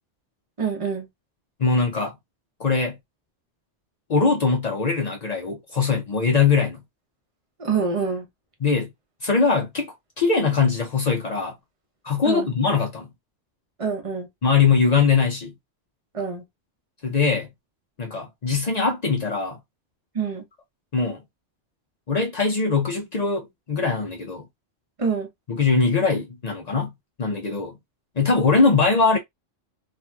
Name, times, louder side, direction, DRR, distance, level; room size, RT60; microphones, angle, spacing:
voice 1, 0.6-1.1 7.6-8.3 12.2-12.5 13.8-14.3 16.1-16.4 20.1-20.4 25.0-25.3, right 5 dB, 30° right, 0.8 m, -26 dB
voice 2, 1.6-2.1 2.6-3.0 4.1-6.8 8.6-8.9 9.2-11.5 12.0-13.1 14.4-15.5 17.0-17.5 18.0-19.6 20.9-21.2 22.1-24.4 25.5-26.9 27.2-27.8 28.2-29.2, left 4 dB, 50° left, 0.5 m, -21 dB
2.9 x 2.9 x 2.2 m
omnidirectional pair, 1.3 m